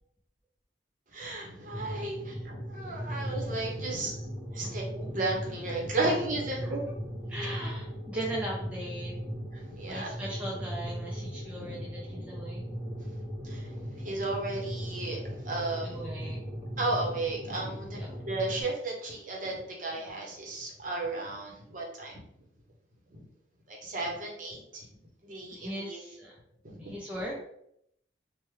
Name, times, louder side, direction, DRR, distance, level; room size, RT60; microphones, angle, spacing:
voice 1, 1.1-4.2 4.5-6.8 8.1-8.2 9.5-10.1 11.6-11.9 12.1-12.3 13.4-16.0 16.8-22.2 23.1-23.2 23.7-24.9 25.2-26.0 26.6-26.9, right 2 dB, 45° right, -1 dB, 0.8 m, -34 dB
sound 1, 1.7-18.6, equal, 25° left, 1.5 m, -38 dB
voice 2, 7.3-9.1 9.9-12.7 15.8-16.4 18.0-18.1 25.5-26.3 26.8-27.4, right 1 dB, 5° right, -5 dB, 0.4 m, -38 dB
3.3 x 2.1 x 3.1 m, 0.73 s
head